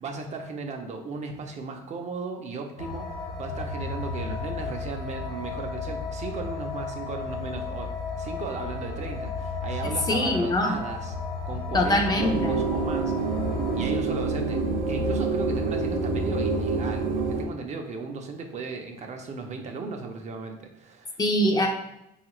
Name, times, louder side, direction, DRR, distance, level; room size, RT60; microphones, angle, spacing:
voice 1, 0.0-3.1 3.4-11.1 11.5-13.4 13.7-21.2, right 4 dB, 45° right, 3 dB, 0.5 m, -36 dB
sound 1, 2.8-13.9, left 3 dB, 70° left, 0.9 m, -34 dB
voice 2, 10.1-10.7 11.7-12.5 21.2-21.7, left 1 dB, 25° left, 3 dB, 0.4 m, -23 dB
sound 2, 12.2-17.4, right 3 dB, 85° right, 0.5 m, -27 dB
3.5 x 2.4 x 2.9 m, 0.85 s
cardioid pair, 110°, 17 cm